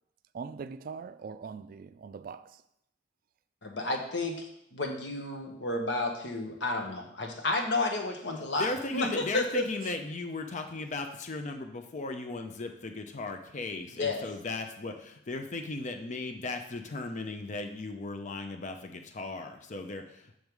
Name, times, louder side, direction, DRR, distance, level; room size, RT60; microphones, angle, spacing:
voice 1, 0.3-2.4, right 5 dB, 50° right, 13 dB, 0.3 m, -41 dB
voice 2, 3.6-4.4 4.7-9.6 14.0-14.2, left 2 dB, 65° left, 3 dB, 1.2 m, -31 dB
voice 3, 8.6-20.4, left 3 dB, 40° left, 6 dB, 0.6 m, -36 dB
6.4 x 5.3 x 4.7 m, 0.77 s
head